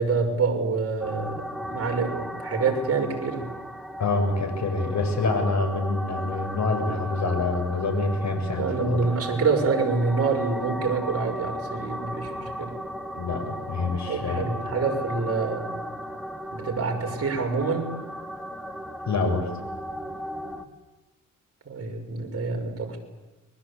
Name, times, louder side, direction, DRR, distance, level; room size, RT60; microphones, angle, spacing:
voice 1, 0.0-3.5 8.6-12.7 14.1-15.7 16.5-17.9 21.7-23.0, right 4 dB, 45° right, 2 dB, 6.0 m, -26 dB
sound 1, 1.0-20.6, equal, ahead, 2.2 m, -36 dB
voice 2, 4.0-9.0 13.1-14.4 19.1-19.5, left 3 dB, 55° left, 5 dB, 7.2 m, -26 dB
30.0 x 22.0 x 8.5 m, 1.1 s
cardioid pair, 105°, 33 cm